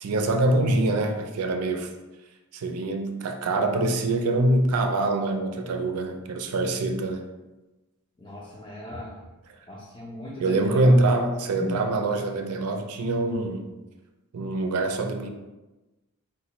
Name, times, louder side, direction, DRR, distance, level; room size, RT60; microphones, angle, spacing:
voice 1, 0.0-1.9 2.5-7.2 10.4-13.7 14.3-15.3, right 2 dB, 75° right, 4 dB, 0.4 m, -24 dB
voice 2, 8.2-9.3 9.7-11.0 11.6-11.7, left 1 dB, 20° left, -5 dB, 0.4 m, -39 dB
4.1 x 2.2 x 2.9 m, 1.1 s
head